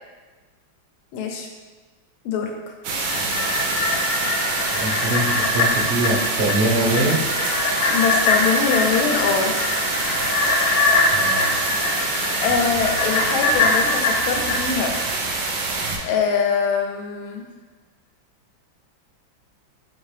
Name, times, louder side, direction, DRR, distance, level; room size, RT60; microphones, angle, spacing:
voice 1, 1.1-1.5 2.2-2.5 7.9-9.5 12.0-14.9 15.4-15.5 16.0-17.5, left 6 dB, 85° left, 2 dB, 1.4 m, -23 dB
sound 1, 2.8-16.0, right 3 dB, 90° right, 1.4 m, -26 dB
sound 2, 2.9-15.4 15.8-15.9, left 3 dB, 70° left, 0.9 m, -23 dB
voice 2, 4.7-7.2 11.1-11.5, right 2 dB, 70° right, -7 dB, 0.6 m, -23 dB
4.1 x 3.5 x 3.2 m, 1.3 s
omnidirectional pair, 2.2 m